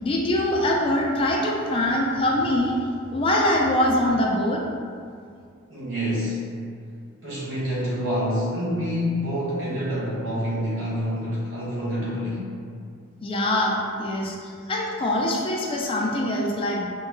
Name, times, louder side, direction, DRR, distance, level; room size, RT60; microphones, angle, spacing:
voice 1, 0.0-2.8 3.1-4.6 13.2-14.3 14.7-16.8, left 1 dB, 25° left, -1 dB, 0.3 m, -23 dB
voice 2, 5.7-6.4 7.2-12.5, equal, 75° right, -9 dB, 1.2 m, -27 dB
4.8 x 2.3 x 2.2 m, 2.2 s
head